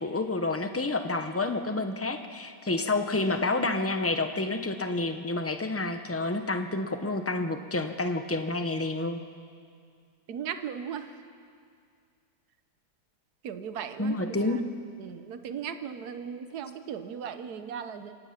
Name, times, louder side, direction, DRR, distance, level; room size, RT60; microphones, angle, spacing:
voice 1, 0.0-9.2 14.0-14.6, left 2 dB, 15° left, 7 dB, 0.4 m, -29 dB
voice 2, 10.3-11.1 13.4-14.4 15.0-18.1, right 8 dB, 65° right, 9 dB, 1.5 m, -37 dB
28.0 x 17.0 x 5.8 m, 2.2 s
omnidirectional pair, 1.8 m